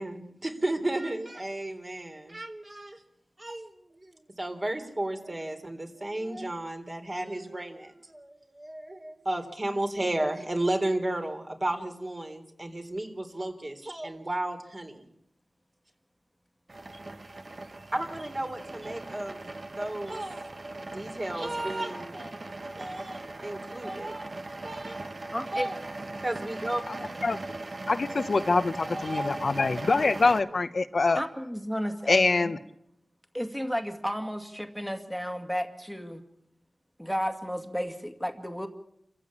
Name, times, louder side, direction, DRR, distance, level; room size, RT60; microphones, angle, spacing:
voice 1, 0.0-3.0 3.4-15.1 17.9-19.4 19.8-20.5 20.9-22.3 22.8-24.3 24.6-25.0 25.5-25.8 26.2-27.3 28.9-29.4, right 1 dB, 30° right, 5 dB, 3.7 m, -33 dB
sound 1, 16.7-30.4, right 2 dB, 45° right, 1.6 m, -39 dB
voice 2, 25.3-25.7 31.1-32.5 33.3-36.2 37.0-38.7, equal, ahead, 6 dB, 2.1 m, -33 dB
voice 3, 27.9-31.2 32.1-32.6, left 3 dB, 60° left, 10 dB, 0.9 m, -24 dB
28.0 x 15.0 x 8.7 m, 0.80 s
wide cardioid pair, 80°, 0 cm